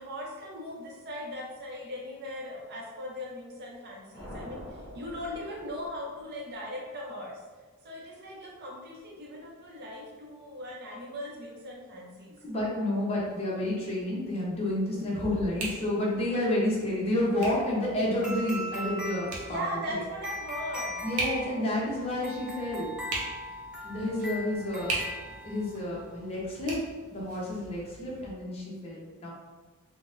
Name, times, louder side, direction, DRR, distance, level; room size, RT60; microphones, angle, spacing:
voice 1, 0.0-7.4 7.8-12.4 19.4-21.0 24.7-25.1, equal, 45° right, -2 dB, 0.6 m, -39 dB
sound 1, 4.1-6.4, equal, 55° left, 0.9 m, -45 dB
voice 2, 12.4-20.0 21.0-23.0 23.8-25.0 25.4-26.8 27.1-29.3, left 1 dB, 25° left, -5 dB, 0.7 m, -30 dB
sound 2, 13.1-28.3, right 2 dB, 90° right, 0.7 m, -41 dB
sound 3, 18.2-25.9, left 1 dB, 5° right, 0.3 m, -40 dB
3.8 x 2.1 x 2.4 m, 1.4 s
head